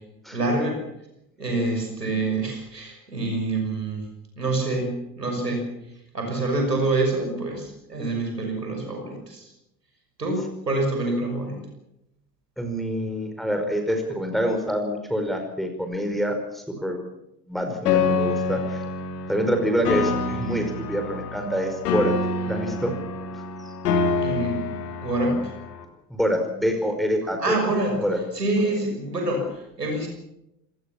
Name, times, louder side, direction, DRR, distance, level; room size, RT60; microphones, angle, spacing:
voice 1, 0.3-0.8 1.4-4.1 4.4-5.7 6.1-9.5 10.2-11.6 24.2-24.6 25.0-25.5 27.4-30.1, right 2 dB, 90° right, 3 dB, 6.3 m, -26 dB
voice 2, 12.6-17.0 17.5-18.8 19.3-22.1 22.5-22.9 26.1-27.6 28.0-28.2, equal, ahead, 4 dB, 5.1 m, -26 dB
Piano, 17.9-25.8, left 4 dB, 75° left, 2.7 m, -27 dB
26.5 x 19.5 x 7.3 m, 0.87 s
figure-of-eight pair, 60°, 47 cm